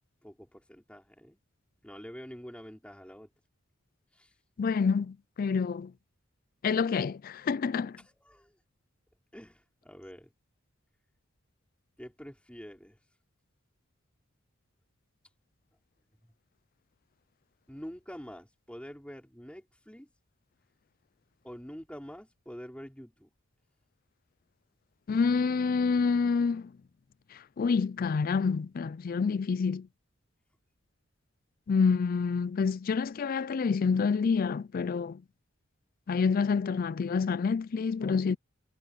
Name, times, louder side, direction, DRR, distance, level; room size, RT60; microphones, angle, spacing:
voice 1, 0.2-1.4 1.8-3.3 4.1-4.3 8.0-8.5 9.3-10.3 12.0-13.0 17.7-20.1 21.4-23.3, equal, 5° left, 4.9 m, -46 dB
voice 2, 4.6-5.9 6.6-8.0 25.1-26.7 27.6-29.9 31.7-35.2 36.1-38.4, left 5 dB, 45° left, 0.4 m, -27 dB
head